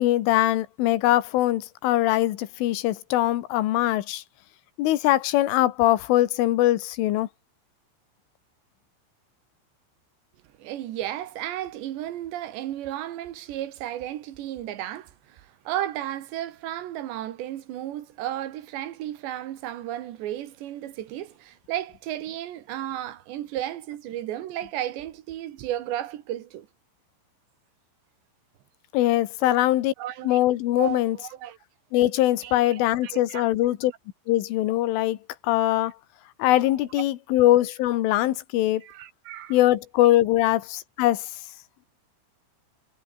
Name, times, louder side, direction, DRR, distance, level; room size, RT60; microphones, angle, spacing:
voice 1, 0.0-4.2 4.8-7.3 28.9-29.9 30.2-31.2 31.9-33.9 34.3-35.2 35.4-35.9 36.4-38.8 39.5-41.3, left 15 dB, 85° left, 4.0 m, -22 dB
voice 2, 10.6-26.7 29.4-29.6 30.0-30.4 30.8-31.6 32.4-33.4 38.8-39.6, right 12 dB, 70° right, 3.6 m, -34 dB
omnidirectional pair, 5.5 m